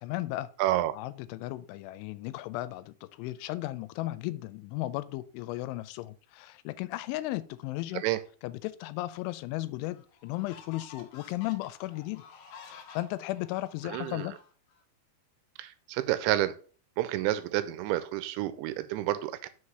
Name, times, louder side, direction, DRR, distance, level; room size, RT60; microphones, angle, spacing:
voice 1, 0.0-0.5 0.9-8.0 8.4-12.2 12.6-14.4, left 17 dB, 85° left, 3.0 m, -35 dB
voice 2, 0.6-0.9 8.0-8.2 13.9-14.3 15.6-16.6 17.0-19.5, right 14 dB, 85° right, 2.8 m, -29 dB
sound 1, 9.2-9.3 9.8-14.8, left 6 dB, 70° left, 2.1 m, -51 dB
6.6 x 4.9 x 5.5 m
omnidirectional pair, 5.4 m